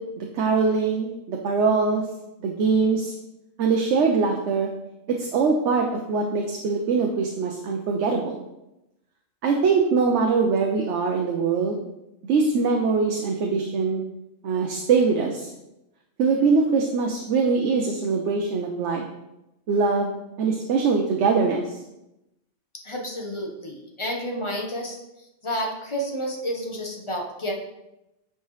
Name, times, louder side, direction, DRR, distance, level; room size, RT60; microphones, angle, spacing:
voice 1, 0.0-2.0 2.4-3.1 3.6-4.7 5.1-8.4 9.4-11.9 12.3-14.0 14.4-15.5 16.2-19.1 19.7-20.1 20.4-21.8, right 4 dB, 75° right, 1 dB, 1.0 m, -22 dB
voice 2, 22.8-25.0 25.4-27.5, equal, 25° left, 1 dB, 0.9 m, -30 dB
8.3 x 4.9 x 3.1 m, 0.92 s
omnidirectional pair, 1.2 m